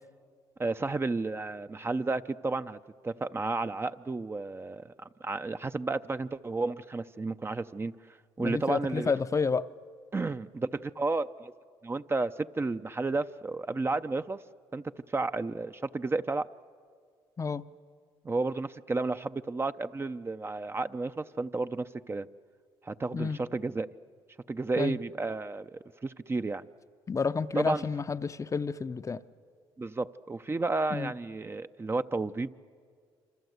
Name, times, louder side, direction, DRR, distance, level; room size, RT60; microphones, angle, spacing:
voice 1, 0.6-2.8 3.0-7.9 8.4-9.1 10.1-11.5 11.8-14.4 14.7-14.8 15.1-16.5 18.2-22.3 22.8-23.9 24.5-26.6 27.6-27.8 29.8-32.5, right 3 dB, 25° right, 0.6 m, -32 dB
voice 2, 8.4-9.7 17.4-17.6 23.1-23.4 24.8-25.0 27.1-29.2 30.9-31.1, left 5 dB, 30° left, 0.6 m, -30 dB
26.5 x 25.5 x 8.0 m
supercardioid pair, 75°, 10 cm